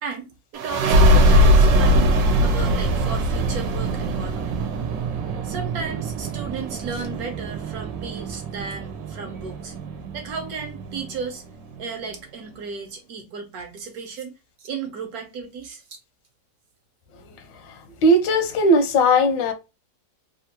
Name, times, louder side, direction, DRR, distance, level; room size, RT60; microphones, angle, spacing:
voice 1, 0.0-4.6 5.4-9.7 10.1-11.4 11.8-15.8, right 5 dB, 65° right, 1.1 m, -34 dB
sound 1, 0.5-11.8, equal, 90° right, 1.3 m, -21 dB
voice 2, 18.0-19.5, equal, 85° left, 1.4 m, -17 dB
3.5 x 2.4 x 2.7 m
omnidirectional pair, 1.9 m